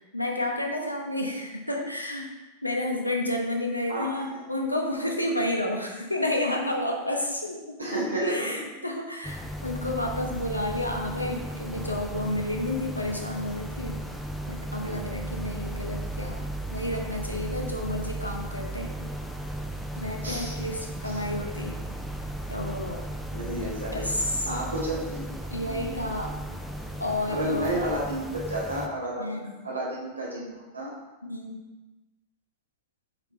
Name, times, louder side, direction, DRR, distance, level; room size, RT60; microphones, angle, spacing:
voice 1, 0.1-2.3 2.6-7.8 8.2-14.0 14.5-18.9 20.0-21.7 22.5-23.0 23.9-24.5 25.5-26.3 27.0-27.8 29.2-29.5 31.2-31.6, left 1 dB, 85° left, 1 dB, 0.9 m, -30 dB
voice 2, 3.9-4.4 7.8-8.7 20.2-20.6 21.0-21.2 23.3-24.1 24.4-25.3 25.6-26.0 27.3-29.2 29.6-30.9, right 1 dB, 80° right, -5 dB, 1.8 m, -31 dB
sound 1, 9.2-28.9, right 1 dB, ahead, 0.6 m, -35 dB
7.0 x 4.5 x 3.3 m, 1.1 s
figure-of-eight pair, 90°, 0 cm